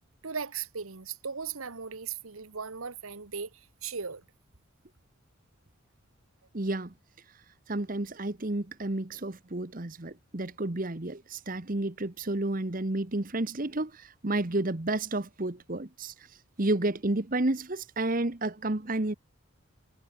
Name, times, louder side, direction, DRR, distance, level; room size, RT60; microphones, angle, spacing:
voice 1, 0.2-4.2, right 6 dB, 80° right, 1.4 m, -37 dB
voice 2, 6.5-6.9 7.7-16.1 16.6-19.1, right 2 dB, 40° right, 1.2 m, -31 dB
head